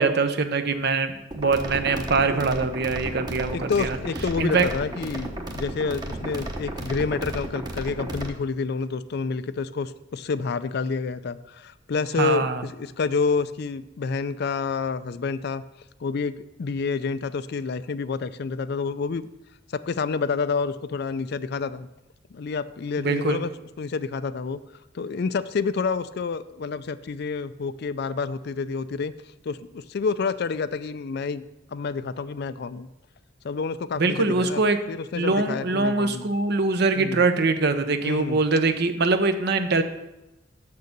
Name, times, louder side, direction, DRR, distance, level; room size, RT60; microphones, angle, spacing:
voice 1, 0.0-4.0 4.4-4.7 12.2-12.6 23.0-23.4 34.0-34.8 35.1-39.8, right 3 dB, 60° right, 9 dB, 0.8 m, -23 dB
sound 1, 1.3-8.3, right 1 dB, 20° right, 0.9 m, -34 dB
voice 2, 3.5-15.6 16.0-16.3 16.6-19.3 19.8-21.9 22.3-23.5 23.8-24.6 24.9-29.1 29.4-31.5 31.7-32.9 33.4-34.6 34.9-36.3 36.9-37.2 38.0-38.4, left 4 dB, 55° left, 14 dB, 0.4 m, -28 dB
7.1 x 6.7 x 6.5 m, 0.92 s
head